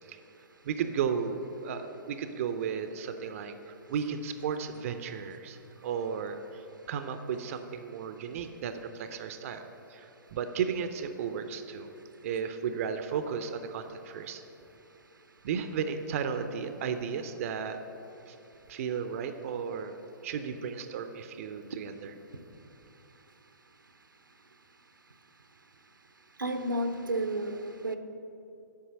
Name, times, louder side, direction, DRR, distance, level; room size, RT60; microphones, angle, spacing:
voice 1, 0.6-11.9 12.2-14.4 15.4-17.8 18.3-18.4 18.7-19.9 20.2-22.1, right 7 dB, 45° right, 8 dB, 0.5 m, -34 dB
voice 2, 26.4-28.0, right 1 dB, 85° right, 8 dB, 0.7 m, -31 dB
8.1 x 5.6 x 7.6 m, 2.9 s
figure-of-eight pair, 125°, 11 cm